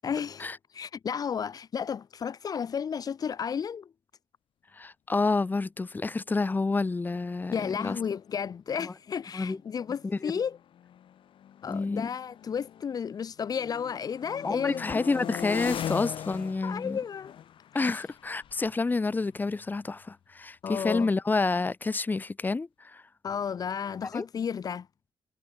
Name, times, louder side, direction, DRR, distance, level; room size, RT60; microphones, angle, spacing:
voice 1, 0.0-3.9 7.5-10.6 11.6-15.0 16.6-17.3 17.7-18.0 20.6-21.1 23.2-24.9, left 7 dB, 45° left, 2.9 m, -33 dB
voice 2, 4.7-8.0 8.8-8.9 9.3-9.6 10.0-10.4 11.7-12.1 14.4-17.0 17.7-23.0 24.1-24.2, left 3 dB, 20° left, 6.3 m, -29 dB
sound 1, 8.0-8.4 9.1-13.0 13.4-20.0, left 10 dB, 85° left, 6.1 m, -41 dB
wide cardioid pair, 170°, 9 cm